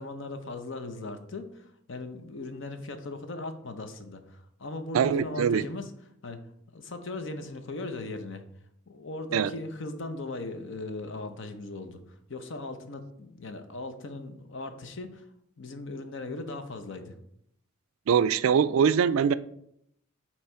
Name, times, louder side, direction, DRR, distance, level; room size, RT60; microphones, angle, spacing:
voice 1, 0.0-5.9 6.2-6.4 6.7-8.4 8.9-15.3 15.6-17.1, left 2 dB, 60° left, 0.7 m, -38 dB
voice 2, 4.9-5.6 9.3-9.5 18.1-19.3, right 7 dB, 80° right, 0.3 m, -23 dB
8.1 x 3.1 x 4.4 m
head